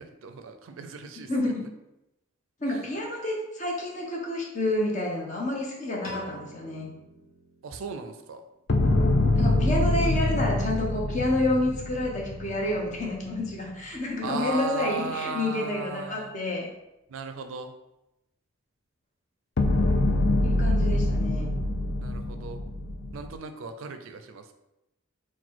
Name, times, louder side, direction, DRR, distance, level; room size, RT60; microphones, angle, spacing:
voice 1, 0.0-1.3 7.6-8.4 14.2-16.3 17.1-17.7 22.0-22.6 23.1-24.5, right 4 dB, 75° right, 7 dB, 0.4 m, -36 dB
voice 2, 1.3-1.7 2.6-6.9 9.3-16.7 20.4-21.5, left 1 dB, 35° left, -2 dB, 0.8 m, -29 dB
Piano, 6.0-8.3, equal, 80° left, 1.1 m, -44 dB
sound 1, 8.7-13.0 19.6-23.3, left 2 dB, 55° left, 0.4 m, -25 dB
3.9 x 2.2 x 4.5 m, 0.91 s
head